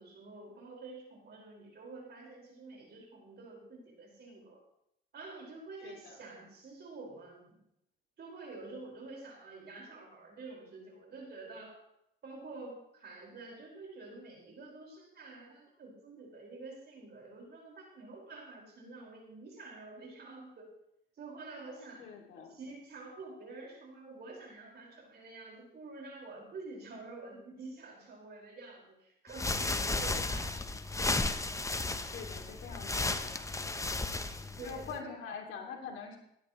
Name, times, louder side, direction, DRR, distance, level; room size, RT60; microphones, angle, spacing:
voice 1, 0.0-4.6 5.1-7.6 8.2-11.8 12.2-20.7 21.2-22.0 22.5-30.5 34.6-35.2, right 3 dB, 55° right, -1 dB, 5.4 m, -48 dB
voice 2, 5.8-6.2 22.0-22.6 32.1-33.4 34.6-36.2, left 6 dB, 85° left, 1 dB, 2.8 m, -44 dB
sound 1, 29.3-35.0, left 2 dB, 15° left, 0.9 m, -34 dB
17.0 x 11.5 x 3.2 m, 0.79 s
cardioid pair, 90°, 20 cm